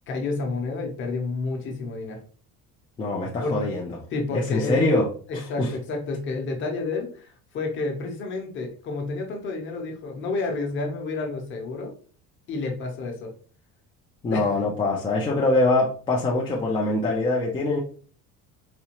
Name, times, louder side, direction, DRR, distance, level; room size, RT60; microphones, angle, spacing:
voice 1, 0.1-2.2 3.4-3.7 4.1-4.8 5.3-11.9 12.5-13.3 14.3-14.6, left 3 dB, 35° left, 2 dB, 0.8 m, -30 dB
voice 2, 3.0-3.9 4.3-5.1 5.6-5.7 14.2-17.8, left 2 dB, 15° left, -3 dB, 0.4 m, -23 dB
4.1 x 2.3 x 2.9 m, 0.42 s
cardioid pair, 175°, 34 cm